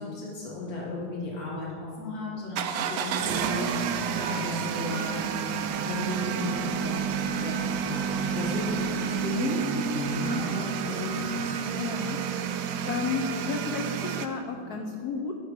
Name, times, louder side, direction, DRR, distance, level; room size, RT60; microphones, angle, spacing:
voice 1, 0.0-5.3 5.6-11.6, left 1 dB, 45° left, -5 dB, 2.2 m, -34 dB
sound 1, 2.6-14.3, right 7 dB, 75° right, 0.9 m, -30 dB
voice 2, 11.7-12.2 12.9-15.3, left 5 dB, 80° left, 3 dB, 0.8 m, -32 dB
11.5 x 4.4 x 5.1 m, 2.2 s
omnidirectional pair, 2.3 m